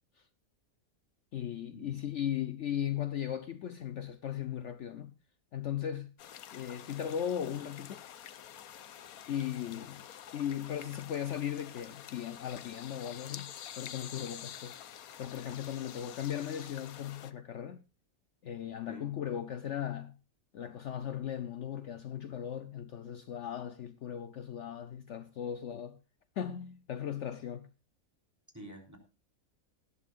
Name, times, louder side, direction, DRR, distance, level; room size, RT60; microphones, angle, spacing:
voice 1, 1.3-5.1 5.5-6.1 6.5-8.0 9.3-10.0 10.3-13.5 13.8-14.8 15.2-17.8 18.4-20.1 20.5-26.0 26.4-27.7, left 10 dB, 60° left, 1.0 m, -37 dB
sound 1, 6.2-17.3, left 10 dB, 85° left, 1.3 m, -48 dB
voice 2, 28.5-29.0, right 1 dB, 10° right, 3.5 m, -48 dB
18.5 x 11.5 x 2.5 m
omnidirectional pair, 1.5 m